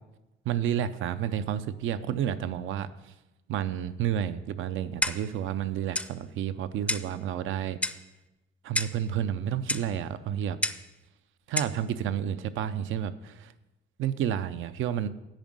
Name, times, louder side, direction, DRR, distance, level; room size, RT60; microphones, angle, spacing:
voice 1, 0.5-3.1 3.5-7.8 8.6-10.6 11.5-13.5 14.0-15.1, right 9 dB, 80° right, 13 dB, 0.6 m, -30 dB
Clock, 5.0-5.4 5.9-6.1 6.9-7.1 7.8-8.1 8.7-9.0 9.7-9.9 10.6-10.9 11.6-11.8, left 1 dB, 5° left, 0.5 m, -30 dB
9.1 x 5.3 x 7.4 m, 0.99 s
cardioid pair, 90°, 20 cm